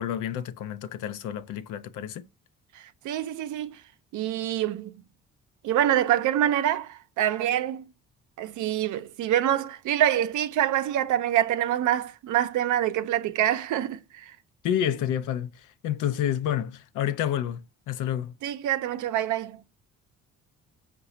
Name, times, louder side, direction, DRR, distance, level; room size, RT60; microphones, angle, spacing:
voice 1, 0.0-2.2 14.6-15.5 15.8-17.6 17.9-18.3, left 10 dB, 85° left, 0.5 m, -29 dB
voice 2, 3.0-3.8 4.1-4.9 5.6-7.8 8.4-14.2 18.4-19.6, right 11 dB, 75° right, 0.5 m, -25 dB
4.7 x 2.3 x 3.9 m
cardioid pair, 90°, 30 cm